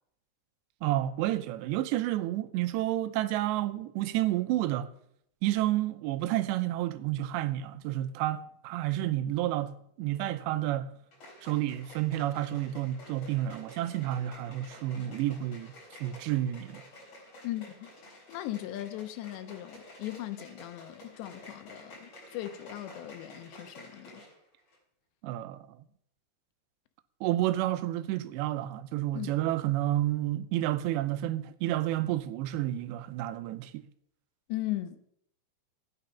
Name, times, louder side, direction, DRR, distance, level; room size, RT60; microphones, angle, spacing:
voice 1, 0.8-4.9 5.4-11.0 11.4-16.9 25.2-25.8 27.2-33.9, right 14 dB, 90° right, 2.9 m, -30 dB
sound 1, 11.1-24.4 24.7-24.8, left 1 dB, 40° left, 5.1 m, -51 dB
voice 2, 17.4-17.9 18.3-24.2 29.1-29.4 34.5-35.1, left 15 dB, 85° left, 3.0 m, -38 dB
13.0 x 9.5 x 5.6 m
omnidirectional pair, 4.9 m